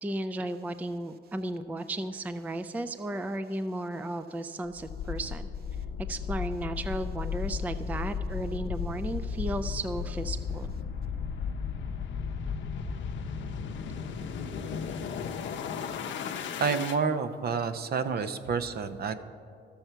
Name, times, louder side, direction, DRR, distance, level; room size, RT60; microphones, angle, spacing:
voice 1, 0.0-5.5 6.1-10.7, right 1 dB, 10° right, 10 dB, 0.3 m, -34 dB
sound 1, 4.8-17.0, left 6 dB, 70° left, 0.7 m, -34 dB
voice 2, 16.6-19.1, right 5 dB, 50° right, 10 dB, 0.6 m, -29 dB
12.0 x 7.1 x 4.5 m, 2.3 s
cardioid pair, 90°, 20 cm